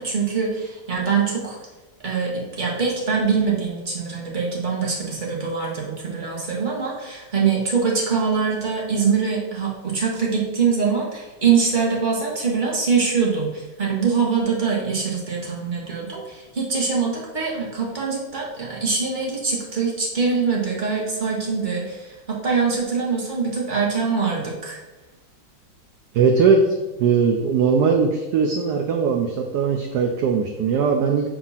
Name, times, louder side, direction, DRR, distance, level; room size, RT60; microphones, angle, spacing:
voice 1, 0.0-1.6 2.0-24.8, right 5 dB, 25° right, -3 dB, 1.3 m, -23 dB
voice 2, 26.1-31.3, right 5 dB, 70° right, 2 dB, 1.0 m, -20 dB
7.1 x 2.8 x 5.6 m, 1.1 s
omnidirectional pair, 2.3 m